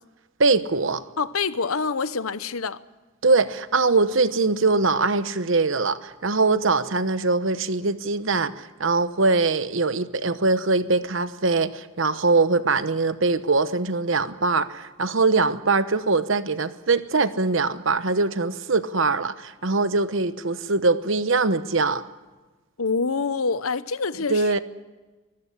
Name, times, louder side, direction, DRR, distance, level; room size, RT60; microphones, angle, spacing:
voice 1, 0.4-1.0 3.2-22.0 24.3-24.6, right 3 dB, 65° right, 1.0 m, -22 dB
voice 2, 1.2-2.8 22.8-24.5, left 4 dB, 85° left, 0.9 m, -26 dB
24.0 x 14.5 x 10.0 m
head